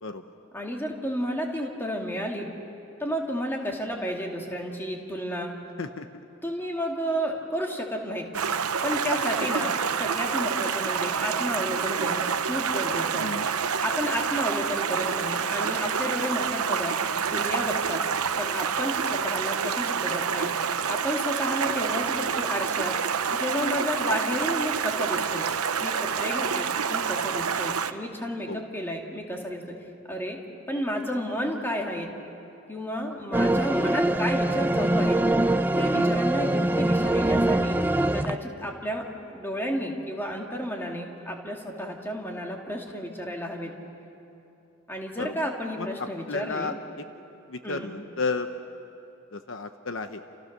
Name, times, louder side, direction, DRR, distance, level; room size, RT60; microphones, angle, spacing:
voice 1, 0.5-2.5 3.0-5.6 6.4-8.3 8.8-9.7 10.0-13.3 13.8-16.9 17.2-18.0 18.4-20.5 20.9-22.9 23.3-25.5 25.8-29.7 30.1-30.4 30.7-32.1 32.7-35.2 35.8-37.8 38.1-43.7 44.9-46.8 47.6-47.9, equal, 10° left, 0 dB, 2.4 m, -32 dB
Stream, 8.3-27.9, right 6 dB, 80° right, 0.9 m, -27 dB
voice 2, 13.2-13.5 28.5-28.7 35.9-36.2 45.1-45.3 45.8-46.8 47.5-48.5 49.3-50.2, left 3 dB, 60° left, 8 dB, 0.9 m, -33 dB
sound 1, 33.3-38.4, right 1 dB, 10° right, 0.5 m, -23 dB
30.0 x 29.0 x 6.7 m, 2.8 s
head